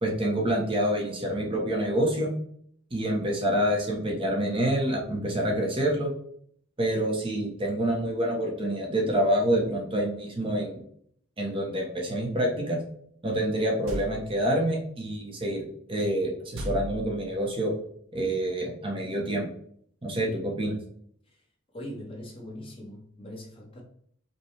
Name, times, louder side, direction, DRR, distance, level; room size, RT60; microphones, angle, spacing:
voice 1, 0.0-2.3 2.9-6.1 6.8-10.8 11.4-12.8 13.2-17.7 18.1-19.5 20.0-20.7, right 1 dB, 25° right, -1 dB, 0.8 m, -27 dB
sound 1, 13.9-14.5 16.5-17.6, equal, 75° right, 0.7 m, -36 dB
voice 2, 21.7-23.8, equal, 25° left, -2 dB, 1.0 m, -41 dB
5.2 x 2.2 x 3.2 m, 0.64 s
head